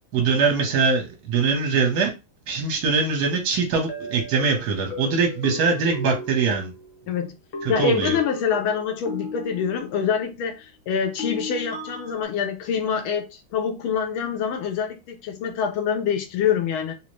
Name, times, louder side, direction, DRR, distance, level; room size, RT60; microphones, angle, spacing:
voice 1, 0.1-2.1 2.5-6.7 7.6-8.2, right 5 dB, 60° right, 1.4 m, -22 dB
sound 1, 2.7-2.8 3.9-7.0 7.5-10.1 11.2-12.3, left 2 dB, 60° left, 0.8 m, -35 dB
voice 2, 7.7-16.9, left 7 dB, 80° left, 1.5 m, -25 dB
3.9 x 2.1 x 3.1 m
omnidirectional pair, 2.3 m